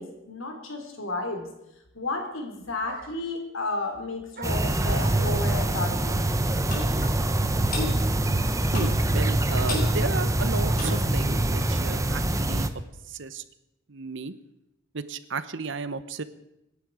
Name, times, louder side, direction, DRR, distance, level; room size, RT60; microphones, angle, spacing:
voice 1, 0.0-1.4 1.9-6.2, left 2 dB, 85° left, 3 dB, 3.9 m, -32 dB
sound 1, 2.4-2.5 2.9-3.3 4.3-5.5 7.0-7.4 8.3-8.4 8.6-11.3, right 3 dB, 50° right, 1.7 m, -44 dB
sound 2, 4.4-12.7, right 1 dB, 15° right, 0.9 m, -24 dB
Clock, 6.7-6.9 7.7-7.9 8.7-9.0 9.7-9.9 10.7-11.0 11.7-11.8, left 2 dB, 45° left, 4.5 m, -31 dB
voice 2, 8.7-12.7 13.1-13.4 13.9-14.3 14.9-16.2, right 4 dB, 65° right, 13 dB, 1.0 m, -34 dB
26.5 x 10.5 x 4.9 m, 0.88 s
head